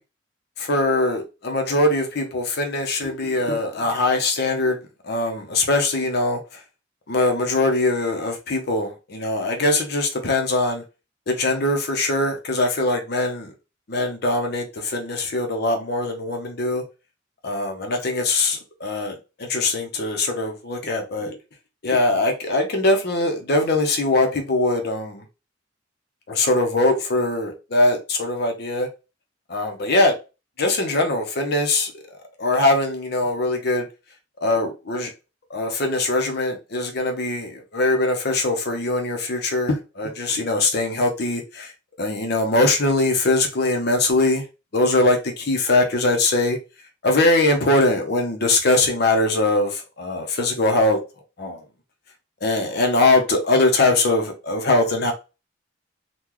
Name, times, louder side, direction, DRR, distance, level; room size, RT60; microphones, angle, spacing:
voice 1, 0.6-4.8 5.0-6.4 7.1-10.8 11.3-13.5 13.9-16.8 17.4-21.3 21.8-25.2 26.3-28.9 29.5-30.2 30.6-31.9 32.4-33.8 34.4-35.1 35.5-41.7 42.0-44.4 44.7-46.6 47.0-51.0 51.4-51.6 52.4-55.1, left 2 dB, 55° left, 0.8 m, -21 dB
3.7 x 2.3 x 3.0 m
head